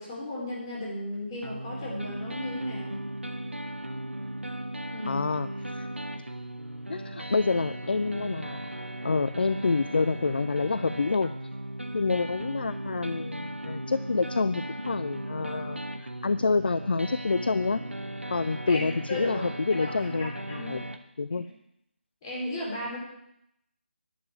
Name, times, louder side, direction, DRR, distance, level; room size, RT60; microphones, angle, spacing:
voice 1, 0.0-3.0 4.9-5.2 18.7-20.7 22.2-23.0, left 1 dB, 25° left, -4 dB, 4.4 m, -35 dB
sound 1, 1.4-21.0, right 1 dB, 80° right, 1.3 m, -37 dB
voice 2, 5.1-5.9 6.9-8.6 9.0-11.3 11.9-17.8 18.3-20.8 21.2-21.5, left 4 dB, 55° left, 14 dB, 0.4 m, -28 dB
11.0 x 6.7 x 8.5 m, 0.78 s
figure-of-eight pair, 155°, 6 cm